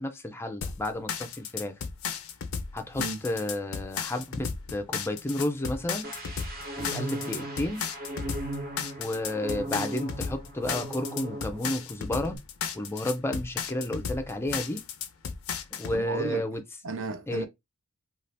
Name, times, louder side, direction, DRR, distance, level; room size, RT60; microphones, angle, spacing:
voice 1, 0.0-1.7 2.7-6.1 6.8-7.9 9.0-12.4 12.7-14.8 15.8-16.6 17.3-17.5, left 1 dB, 10° left, 0.4 m, -32 dB
sound 1, 0.6-16.0, left 6 dB, 65° left, 0.5 m, -35 dB
sound 2, 6.0-11.8 12.1-12.4, right 1 dB, 45° right, 1.0 m, -38 dB
voice 2, 15.9-16.5 16.8-17.5, right 4 dB, 60° right, 0.6 m, -34 dB
2.6 x 2.4 x 3.3 m
head